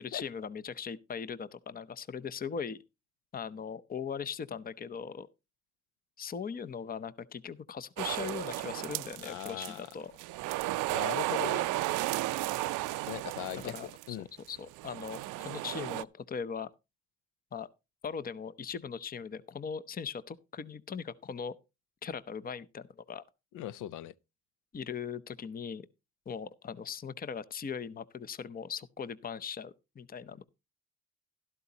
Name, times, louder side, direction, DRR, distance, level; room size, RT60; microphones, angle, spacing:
voice 1, 0.0-2.8 3.3-5.3 6.2-10.1 13.6-14.2 14.5-16.7 17.5-17.7 18.0-21.5 22.0-23.2 24.7-25.8 26.3-30.4, left 6 dB, 30° left, 0.7 m, -39 dB
sound 1, 8.0-9.9 10.2-14.1 14.8-16.0, right 18 dB, 90° right, 0.5 m, -34 dB
voice 2, 9.2-9.9 10.9-11.7 13.1-13.7 14.1-14.3 23.5-24.1, left 13 dB, 90° left, 0.5 m, -39 dB
12.5 x 12.0 x 2.8 m
cardioid pair, 90°, 30 cm